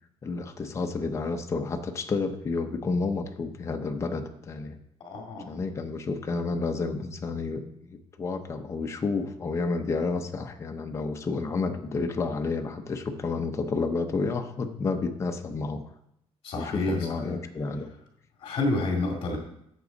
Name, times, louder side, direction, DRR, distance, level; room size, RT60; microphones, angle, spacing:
voice 1, 0.2-4.8 5.5-7.9 8.2-15.8 16.6-17.9, left 4 dB, 25° left, 4 dB, 0.9 m, -30 dB
voice 2, 5.0-5.6 16.4-17.4 18.4-19.4, left 2 dB, 50° left, 0 dB, 2.4 m, -29 dB
13.5 x 7.2 x 4.0 m, 0.76 s
cardioid pair, 170°, 11 cm